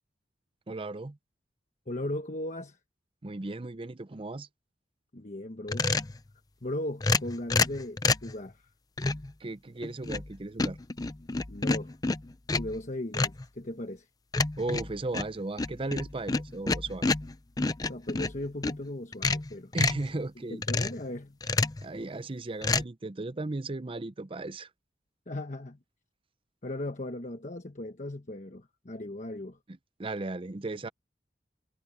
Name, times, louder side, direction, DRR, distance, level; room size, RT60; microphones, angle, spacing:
voice 1, 0.7-1.2 3.2-4.5 9.4-10.8 14.6-17.1 19.7-20.6 21.8-24.7 30.0-30.9, right 2 dB, 30° right, 0.6 m, -35 dB
voice 2, 1.9-2.8 5.1-5.9 6.6-8.6 11.5-11.9 12.6-14.1 17.9-19.7 20.5-21.4 25.3-25.8 26.6-29.6, left 1 dB, 45° left, 1.2 m, -37 dB
sound 1, 5.7-6.2 7.0-8.3 9.0-9.3 9.8-10.3 10.6-12.8 13.1-13.5 14.3-18.8 19.1-20.1 20.6-21.0 21.4-21.9 22.6-22.8, left 3 dB, 20° left, 0.5 m, -29 dB
head